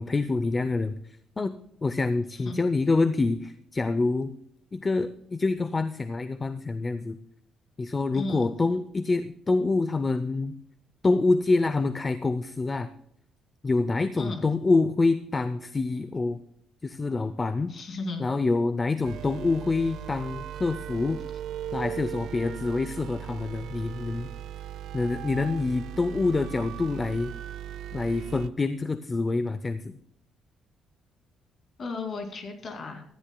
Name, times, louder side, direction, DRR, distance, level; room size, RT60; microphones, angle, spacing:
voice 1, 0.0-1.5 1.8-4.3 4.7-7.2 7.8-10.5 11.0-12.9 13.6-16.4 16.8-17.7 18.2-21.2 21.7-24.3 24.9-27.3 27.9-30.0, left 3 dB, 20° left, 12 dB, 0.5 m, -26 dB
voice 2, 8.1-8.5 14.2-14.5 17.7-18.2 31.8-33.0, left 3 dB, 35° left, 4 dB, 2.5 m, -35 dB
sound 1, 19.0-28.5, right 10 dB, 65° right, 0.5 m, -38 dB
18.0 x 13.0 x 2.3 m, 0.73 s
cardioid pair, 155°, 0 cm